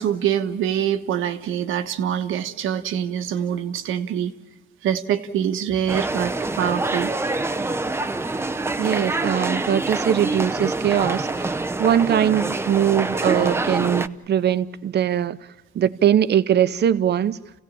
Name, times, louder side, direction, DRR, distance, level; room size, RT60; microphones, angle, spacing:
voice 1, 0.0-4.3 4.8-7.1, right 9 dB, 85° right, 1.4 m, -25 dB
sound 1, 5.9-14.1, right 2 dB, 10° right, 0.7 m, -26 dB
voice 2, 8.8-15.4 15.7-17.4, right 10 dB, 60° right, 0.9 m, -21 dB
28.5 x 16.5 x 8.7 m
cardioid pair, 90°, 20 cm